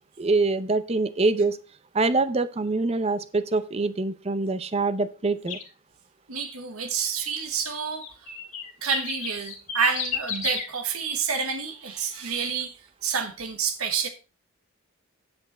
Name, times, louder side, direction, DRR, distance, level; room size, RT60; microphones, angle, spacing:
voice 1, 0.2-1.6 1.9-5.6, right 3 dB, 30° right, 0.5 m, -24 dB
sound 1, 5.5-5.7 7.9-10.7, left 7 dB, 35° left, 1.8 m, -32 dB
voice 2, 6.3-8.3 8.8-12.8 13.0-14.1, right 6 dB, 90° right, 1.3 m, -28 dB
8.5 x 7.8 x 4.2 m
head